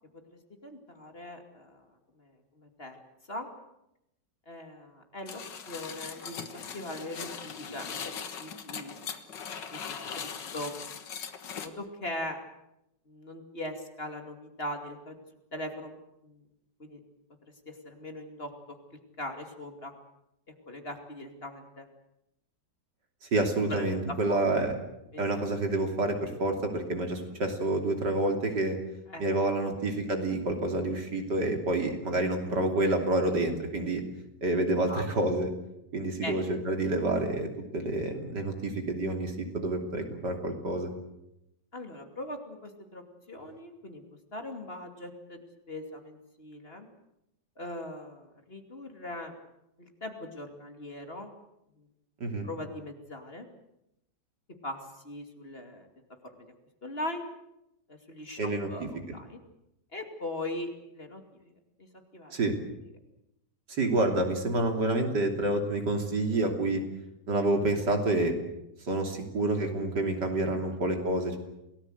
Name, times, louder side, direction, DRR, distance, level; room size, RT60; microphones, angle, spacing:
voice 1, 0.6-1.9 2.2-3.0 3.3-3.5 4.5-9.0 9.7-10.7 11.5-12.4 13.1-15.2 15.5-16.0 16.2-16.4 16.8-17.0 17.7-19.9 20.7-21.9 23.7-24.4 25.1-25.3 29.1-29.2 29.6-29.8 34.9-35.0 36.2-36.3 41.7-44.0 44.3-46.9 47.6-49.4 49.8-51.3 51.8-51.9 52.4-53.5 54.6-55.9 56.3-56.5 56.8-57.2 57.9-59.4 59.9-61.5 61.8-62.4, left 1 dB, 35° left, 5 dB, 2.8 m, -40 dB
sound 1, 5.3-11.7, left 7 dB, 90° left, 2.2 m, -40 dB
voice 2, 23.2-24.7 25.2-28.8 29.2-34.0 34.4-35.5 35.9-37.5 37.7-40.9 52.2-52.4 58.4-58.7 62.3-62.5 63.7-66.8 67.3-68.3 68.9-71.4, right 2 dB, 75° right, 4 dB, 3.7 m, -28 dB
28.0 x 18.5 x 8.0 m, 0.86 s
omnidirectional pair, 1.9 m